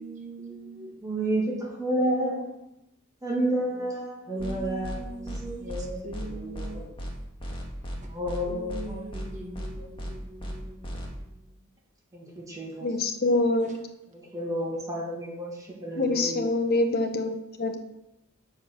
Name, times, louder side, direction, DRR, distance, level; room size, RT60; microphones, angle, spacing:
voice 1, 0.0-1.0 4.3-6.8 8.4-11.5, right 2 dB, 35° right, 1 dB, 1.4 m, -42 dB
voice 2, 1.0-2.5 3.2-5.2 5.6-6.9 8.1-9.9 12.1-12.9 14.1-16.5, right 1 dB, 15° right, -3 dB, 1.8 m, -31 dB
sound 1, 4.4-4.5 4.8-5.0 5.2-5.4 5.7-5.8 6.1-6.3 6.5-6.7 7.0-7.1 7.4-8.0 8.2-8.4 8.7-8.8 9.1-9.3 9.5-9.7 10.0-10.1 10.4-10.5 10.8-11.0, equal, 25° left, 1.4 m, -35 dB
voice 3, 12.8-13.8 16.0-17.3 17.6-17.7, left 2 dB, 45° left, 6 dB, 0.9 m, -25 dB
7.6 x 4.5 x 6.2 m, 0.86 s
head